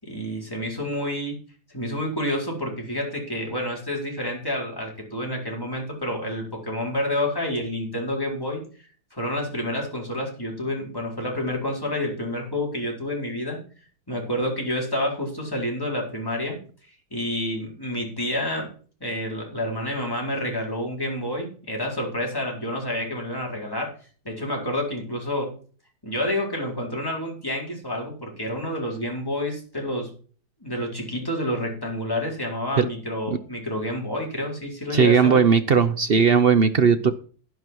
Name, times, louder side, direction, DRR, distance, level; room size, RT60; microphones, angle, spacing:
voice 1, 0.0-1.4 1.7-8.6 9.1-13.6 14.1-16.6 17.1-18.7 19.0-23.9 24.2-25.5 26.0-30.1 30.6-35.4, left 1 dB, 10° left, -1 dB, 4.8 m, -29 dB
voice 2, 34.9-37.1, right 6 dB, 50° right, 11 dB, 0.7 m, -18 dB
11.5 x 10.5 x 4.7 m, 0.40 s
omnidirectional pair, 1.8 m